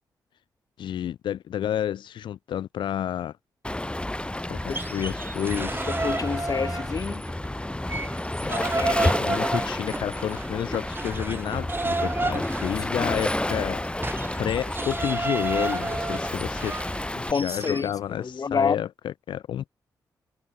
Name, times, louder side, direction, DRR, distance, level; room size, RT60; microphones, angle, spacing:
voice 1, 0.8-3.3 4.5-4.6 4.9-5.9 9.0-13.8 14.4-16.7 17.3-19.7, left 10 dB, 85° left, 1.7 m, -30 dB
Waves surf, 3.6-17.3, left 1 dB, 15° left, 4.2 m, -30 dB
sound 1, 4.6-7.3 7.6-17.9, right 3 dB, 25° right, 3.8 m, -31 dB
voice 2, 5.9-7.2 8.4-9.1 12.8-13.1 17.1-18.8, left 5 dB, 50° left, 1.5 m, -29 dB
cardioid pair, 60°, 8 cm